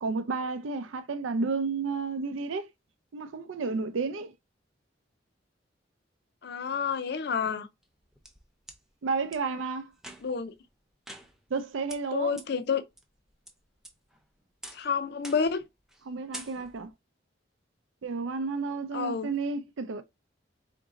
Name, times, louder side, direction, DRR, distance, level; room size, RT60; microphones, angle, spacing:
voice 1, 0.0-2.7 3.1-4.3 9.0-9.9 11.5-12.4 16.1-16.9 18.0-20.0, right 4 dB, 90° right, 0.4 m, -31 dB
voice 2, 6.4-7.7 10.2-10.5 12.1-12.8 14.7-15.6 18.9-19.3, left 6 dB, 60° left, 0.5 m, -29 dB
sound 1, 7.8-8.8 9.3-9.4 10.0-10.5 11.1-11.6 11.9-12.0 12.4-12.5 13.0-13.5 13.8-14.2 14.6-14.9 15.2-15.6 15.9-16.1 16.3-16.9, right 1 dB, 5° right, 0.6 m, -46 dB
3.8 x 2.6 x 3.7 m
head